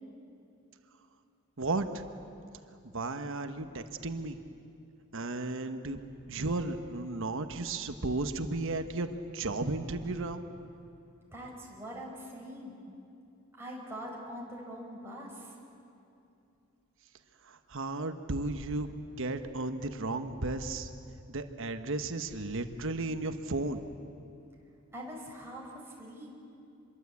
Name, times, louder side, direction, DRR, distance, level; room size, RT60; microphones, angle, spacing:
voice 1, 1.6-2.0 2.9-4.4 5.1-6.0 6.3-10.4 17.5-18.9 19.2-20.9 21.3-23.8, right 2 dB, 65° right, 8 dB, 1.2 m, -34 dB
voice 2, 11.3-12.8 13.6-15.5 24.9-26.3, equal, 10° right, -3 dB, 5.2 m, -43 dB
25.5 x 22.5 x 8.4 m, 2.6 s
head